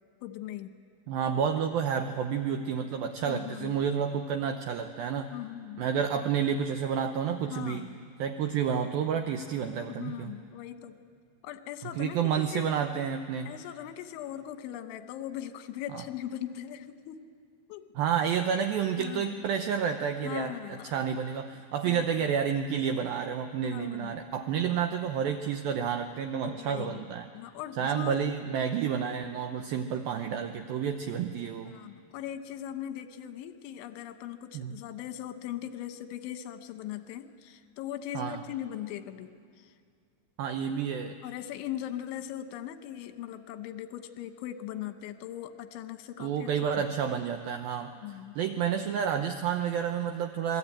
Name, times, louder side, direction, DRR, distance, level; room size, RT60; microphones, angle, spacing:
voice 1, 0.2-0.7 3.2-3.8 5.3-5.8 7.5-8.0 9.9-11.0 11.4-12.8 13.5-17.2 17.7-17.9 19.0-19.4 20.2-20.9 21.9-22.1 23.6-24.2 26.4-27.0 27.3-28.2 31.7-39.3 39.6-39.7 41.2-46.5 46.8-46.9 48.0-48.4, left 11 dB, 85° left, 9 dB, 3.4 m, -39 dB
voice 2, 1.1-5.3 5.8-7.9 8.2-10.3 11.9-13.5 15.9-16.0 18.0-27.3 27.8-31.8 34.5-34.8 38.1-38.4 40.4-41.2 46.2-47.9 48.4-50.6, right 7 dB, 80° right, 6 dB, 2.1 m, -30 dB
27.0 x 21.0 x 8.8 m, 2.1 s
omnidirectional pair, 5.3 m